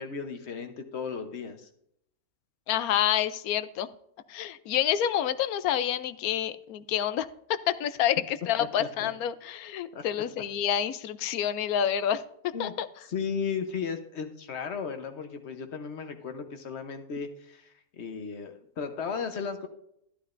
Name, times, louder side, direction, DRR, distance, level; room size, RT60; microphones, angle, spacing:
voice 1, 0.0-1.7 8.6-9.1 9.9-10.0 12.5-12.7 13.1-19.7, left 6 dB, 50° left, 7 dB, 1.1 m, -35 dB
voice 2, 2.7-3.9 4.3-12.9, left 10 dB, 80° left, 14 dB, 1.1 m, -28 dB
11.5 x 11.5 x 2.6 m, 0.74 s
omnidirectional pair, 1.5 m